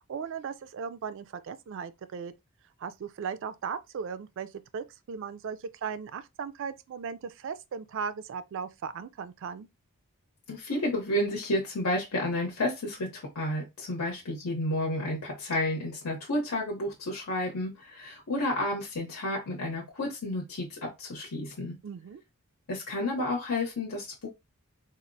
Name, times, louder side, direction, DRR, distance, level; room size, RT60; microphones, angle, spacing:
voice 1, 0.1-2.3 2.8-9.7 21.8-22.2, right 6 dB, 60° right, 0.3 m, -37 dB
voice 2, 10.5-21.8 22.7-24.3, left 1 dB, 85° left, 0.8 m, -31 dB
4.1 x 2.0 x 2.5 m
head